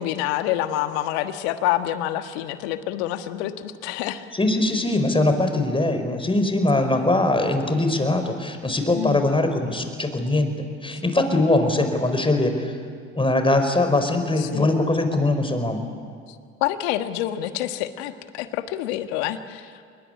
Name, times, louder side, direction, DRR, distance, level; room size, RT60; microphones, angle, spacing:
voice 1, 0.0-4.3 6.9-7.2 8.9-9.2 14.4-14.7 16.3-19.8, left 12 dB, 80° left, 9 dB, 1.5 m, -27 dB
voice 2, 4.3-10.5 10.8-12.7 13.1-15.9, left 2 dB, 15° left, 7 dB, 5.0 m, -21 dB
25.5 x 21.5 x 10.0 m, 2.1 s
hypercardioid pair, 60°, 32 cm